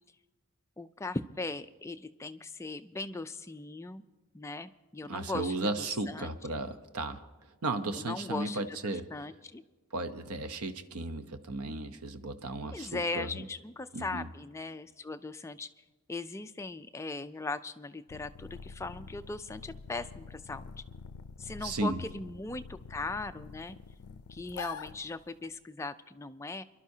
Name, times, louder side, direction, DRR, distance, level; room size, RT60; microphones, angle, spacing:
voice 1, 0.8-4.0 4.3-6.3 7.9-9.6 12.7-15.7 16.1-20.7 21.4-23.8 24.3-26.6, left 3 dB, 15° left, 10 dB, 0.3 m, -39 dB
voice 2, 5.0-7.2 7.6-9.1 9.9-13.3 13.9-14.3 21.6-22.0, right 2 dB, 85° right, 9 dB, 0.8 m, -35 dB
sound 1, 18.1-25.6, left 5 dB, 80° left, 0.4 m, -46 dB
28.0 x 11.5 x 2.8 m, 1.2 s
head